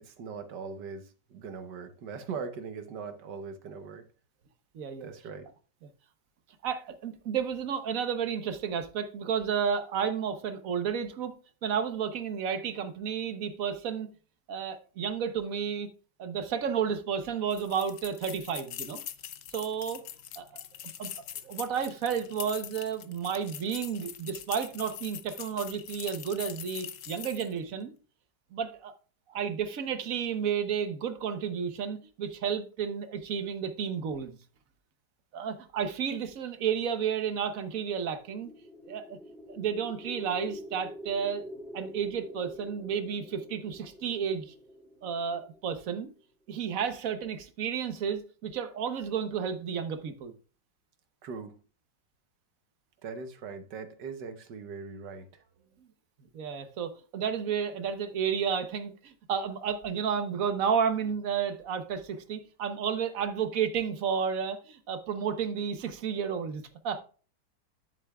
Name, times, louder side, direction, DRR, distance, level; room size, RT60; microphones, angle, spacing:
voice 1, 0.0-4.0 5.0-5.5 20.5-20.7 51.2-51.6 53.0-55.4, right 5 dB, 70° right, 1.6 m, -40 dB
voice 2, 4.7-5.1 6.6-11.3 11.6-14.1 14.5-15.9 16.2-19.0 19.5-20.0 20.4-20.5 21.0-21.1 21.4-27.9 28.5-28.9 29.3-34.4 35.3-38.5 38.9-39.2 39.5-44.5 45.0-46.1 46.5-50.3 56.3-67.0, right 7 dB, 55° right, 1.2 m, -32 dB
sound 1, 17.5-27.6, left 10 dB, 60° left, 0.9 m, -43 dB
sound 2, 38.0-46.0, equal, ahead, 3.4 m, -46 dB
10.0 x 8.2 x 2.3 m
omnidirectional pair, 1.9 m